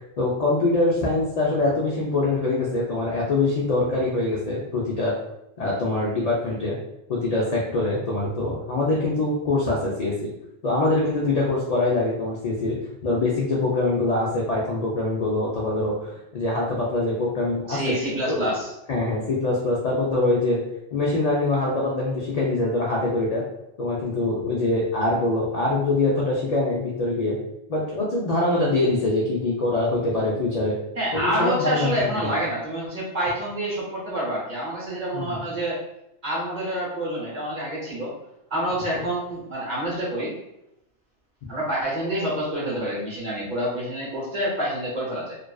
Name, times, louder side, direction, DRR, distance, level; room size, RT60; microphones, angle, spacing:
voice 1, 0.2-5.1 5.6-6.8 7.1-10.1 10.6-17.9 18.3-18.5 18.9-20.6 20.9-23.4 23.8-27.4 27.7-30.7 31.1-32.3 35.1-35.4, left 2 dB, 65° left, -4 dB, 0.4 m, -24 dB
voice 2, 17.7-18.7 30.9-35.8 36.2-38.1 38.5-40.3 41.5-45.4, right 1 dB, 45° right, -5 dB, 0.8 m, -27 dB
2.5 x 2.2 x 2.2 m, 0.85 s
omnidirectional pair, 1.2 m